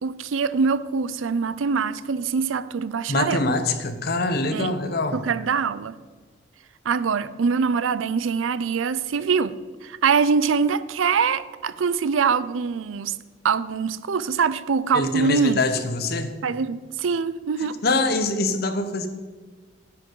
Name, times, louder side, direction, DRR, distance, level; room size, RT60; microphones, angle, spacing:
voice 1, 0.0-3.4 4.5-4.7 5.1-6.0 6.8-9.5 9.8-13.1 13.4-15.6 16.4-17.8, right 5 dB, 85° right, 0.5 m, -23 dB
voice 2, 3.1-5.2 14.9-16.3 17.8-19.1, left 2 dB, 50° left, 0.9 m, -24 dB
10.5 x 9.8 x 3.8 m
head